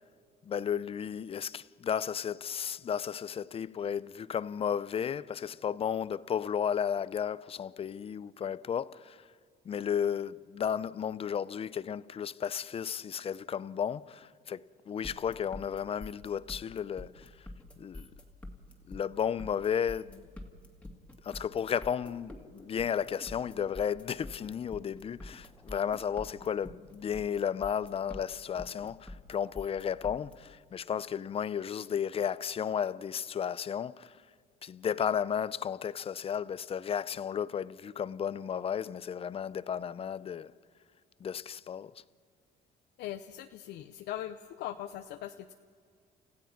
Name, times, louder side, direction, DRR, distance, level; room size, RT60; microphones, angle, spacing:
voice 1, 0.4-9.3 9.6-17.5 17.8-18.1 18.9-20.3 21.2-34.2 34.6-40.5 41.2-42.0, left 8 dB, 35° left, 0.5 m, -33 dB
sound 1, 15.0-30.3, left 1 dB, 5° left, 2.3 m, -46 dB
voice 2, 43.0-45.5, left 12 dB, 80° left, 0.7 m, -40 dB
30.0 x 15.5 x 5.9 m
cardioid pair, 110°, 17 cm